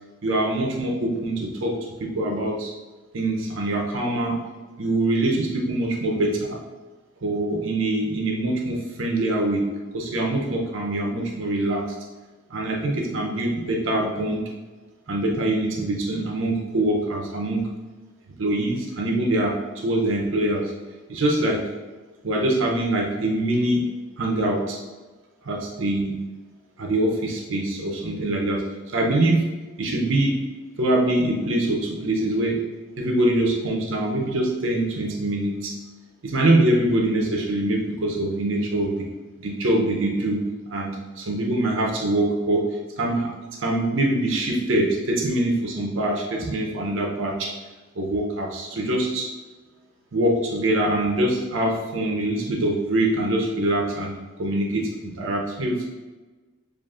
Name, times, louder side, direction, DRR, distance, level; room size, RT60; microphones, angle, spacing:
voice 1, 0.2-2.7 3.1-4.4 4.8-6.6 7.2-9.7 9.9-12.0 12.5-14.5 15.1-17.7 18.4-20.7 21.1-21.7 22.2-23.9 24.2-24.8 25.4-26.2 26.8-29.5 29.8-30.4 30.8-32.7 33.0-35.7 36.2-39.1 39.4-43.3 43.6-47.5 48.0-49.3 50.1-55.9, right 1 dB, 70° right, -1 dB, 0.6 m, -24 dB
7.3 x 2.5 x 2.4 m, 1.3 s
head